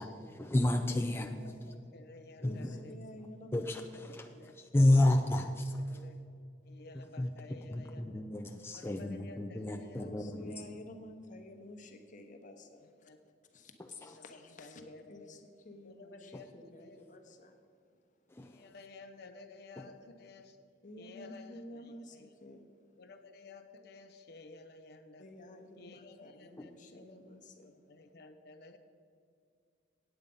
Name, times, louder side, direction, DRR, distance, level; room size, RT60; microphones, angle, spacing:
voice 1, 0.0-1.5 2.4-2.7 3.5-4.3 4.6-6.1 7.2-7.3 7.7-10.6 18.3-18.6 26.6-26.7, left 1 dB, 15° left, 4 dB, 0.4 m, -31 dB
voice 2, 1.1-3.0 4.1-4.6 4.9-5.0 5.4-5.5 5.9-6.2 6.7-8.2 8.7-10.5 12.8-13.2 14.0-15.4 15.8-16.5 16.8-17.0 18.4-20.6 21.0-22.3 23.0-25.2 25.8-27.2 27.6-28.8, left 3 dB, 60° left, 6 dB, 0.6 m, -54 dB
voice 3, 2.4-4.7 10.0-13.1 13.5-17.6 17.9-18.4 20.8-22.7 25.2-27.8, left 1 dB, 45° left, 5 dB, 1.0 m, -52 dB
8.9 x 8.2 x 5.3 m, 2.3 s
head